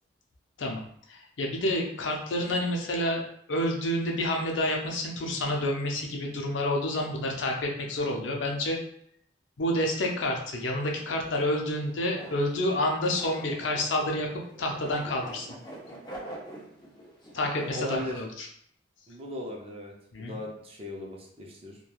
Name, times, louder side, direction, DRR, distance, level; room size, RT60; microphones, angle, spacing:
voice 1, 0.6-3.2 3.5-8.8 9.6-14.3 14.6-15.5 17.3-18.5 20.1-20.4, left 1 dB, 80° left, 1 dB, 0.5 m, -29 dB
sound 1, 11.2-18.1, right 1 dB, 20° left, 0.6 m, -45 dB
voice 2, 17.7-18.2 19.1-21.8, left 1 dB, 30° right, -1 dB, 0.5 m, -38 dB
3.1 x 2.2 x 2.3 m, 0.66 s
head